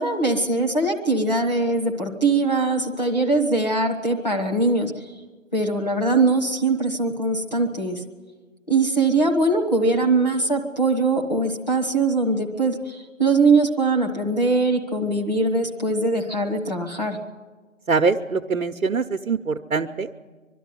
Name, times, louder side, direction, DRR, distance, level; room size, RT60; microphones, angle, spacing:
voice 1, 0.0-4.9 5.5-8.0 8.7-17.2, right 3 dB, 30° left, -1 dB, 1.4 m, -21 dB
voice 2, 17.9-20.1, right 4 dB, 80° right, 5 dB, 0.9 m, -23 dB
22.0 x 12.5 x 9.6 m, 1.4 s
figure-of-eight pair, 180°, 41 cm